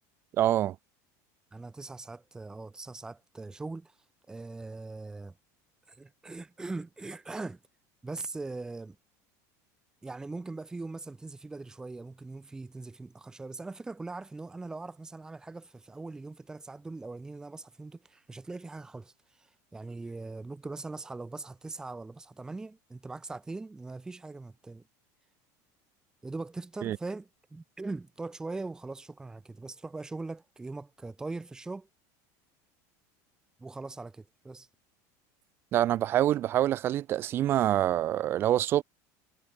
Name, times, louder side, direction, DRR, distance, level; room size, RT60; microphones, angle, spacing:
voice 1, 0.4-0.8 26.8-27.0 35.7-38.8, right 12 dB, 25° right, 0.3 m, -26 dB
voice 2, 1.5-4.0 4.3-5.3 5.9-7.6 8.0-9.0 10.0-24.8 26.2-31.9 33.6-34.7, right 3 dB, 5° right, 1.9 m, -41 dB
cardioid pair, 175°, 9 cm